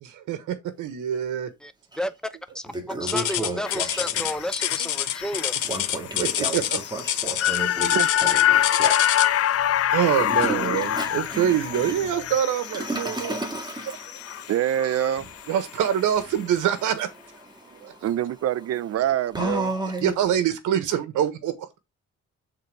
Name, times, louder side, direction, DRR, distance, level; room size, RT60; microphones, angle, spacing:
voice 1, 0.0-1.5 6.2-6.8 9.9-13.4 15.5-17.1 20.0-21.7, right 10 dB, 85° right, 1.3 m, -25 dB
voice 2, 1.6-5.6, equal, ahead, 0.8 m, -32 dB
Toilet flush, 1.9-2.0 2.5-4.4 5.6-9.2 10.1-20.4, right 2 dB, 15° right, 1.8 m, -34 dB
sound 1, 3.1-9.5 10.4-10.7 11.2-11.3 12.0-12.1, left 11 dB, 75° left, 1.1 m, -27 dB
sound 2, 3.7-16.0 16.3-16.4, left 11 dB, 50° left, 0.6 m, -26 dB
voice 3, 14.5-15.3 17.8-19.7, right 11 dB, 55° right, 0.6 m, -26 dB
7.4 x 4.0 x 4.8 m
cardioid pair, 90°, 30 cm